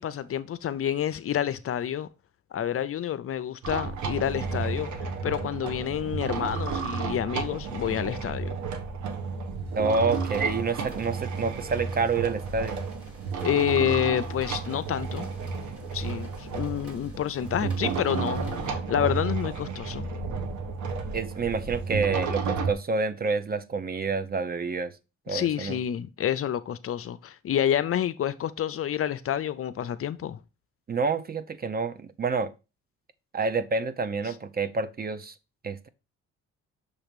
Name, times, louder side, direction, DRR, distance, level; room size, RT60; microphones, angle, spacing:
voice 1, 0.0-2.1 2.5-8.6 13.4-15.3 15.9-20.1 25.3-30.4 34.3-34.4, left 10 dB, 50° left, 0.5 m, -29 dB
sound 1, 3.6-22.7, right 5 dB, 70° right, 1.2 m, -32 dB
voice 2, 9.8-12.8 21.1-24.9 25.3-25.8 30.9-32.5 33.3-35.3 35.6-35.9, right 4 dB, 30° right, 0.6 m, -28 dB
sound 2, 10.1-18.7, right 1 dB, 50° right, 2.0 m, -47 dB
6.6 x 3.0 x 5.1 m
cardioid pair, 90°, 30 cm